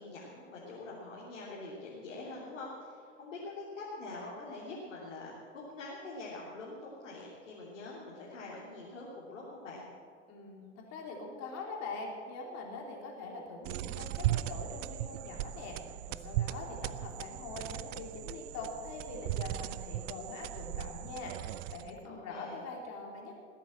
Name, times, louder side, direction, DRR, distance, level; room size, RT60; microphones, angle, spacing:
voice 1, 0.0-9.8 22.0-22.7, left 2 dB, 80° left, -6 dB, 3.2 m, -45 dB
voice 2, 10.3-23.4, left 3 dB, 45° left, 0 dB, 3.3 m, -43 dB
sound 1, 13.6-22.1, right 14 dB, 55° right, 0.6 m, -37 dB
19.5 x 8.4 x 7.5 m, 2.2 s
hypercardioid pair, 90°, 37 cm